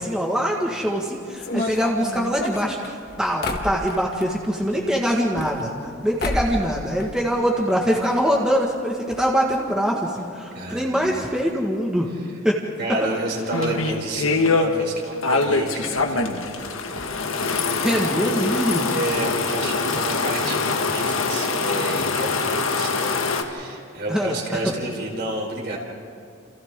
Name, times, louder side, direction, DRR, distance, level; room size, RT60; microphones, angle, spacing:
voice 1, 0.0-5.7 6.0-12.1 12.4-12.6 13.0-13.1 17.8-18.8 24.1-24.4, equal, 5° right, -2 dB, 1.7 m, -23 dB
sound 1, 1.4-4.3 5.1-5.9 6.2-6.7 7.0-7.8 8.0-8.1 8.3-8.4 9.1-9.2 9.5-9.7, left 2 dB, 50° left, 1.6 m, -30 dB
voice 2, 10.5-11.2 12.8-16.8 18.8-23.2 23.4-25.8, right 2 dB, 55° right, -1 dB, 4.8 m, -30 dB
sound 2, 13.5-14.7 15.2-23.4, left 3 dB, 85° left, 1.7 m, -23 dB
29.5 x 28.5 x 3.7 m, 2.4 s
head